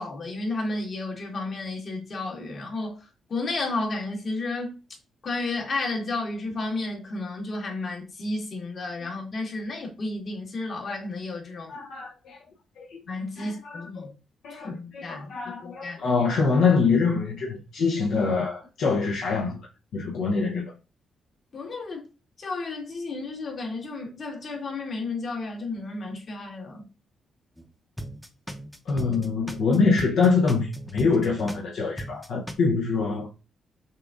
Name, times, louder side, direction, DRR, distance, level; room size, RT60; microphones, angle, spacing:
voice 1, 0.0-4.7 5.2-11.7 13.0-14.1 14.5-15.3 15.6-16.0 21.5-22.0 22.4-26.8, left 2 dB, 50° left, 1.5 m, -32 dB
voice 2, 11.7-12.4 12.8-13.0 13.4-14.1 14.4-19.6 19.9-20.7 28.9-33.3, left 4 dB, 80° left, 0.7 m, -25 dB
sound 1, 27.6-27.7 28.0-31.7 32.0-32.5, equal, ahead, 0.7 m, -38 dB
6.5 x 2.6 x 2.4 m
cardioid pair, 80°, 0 cm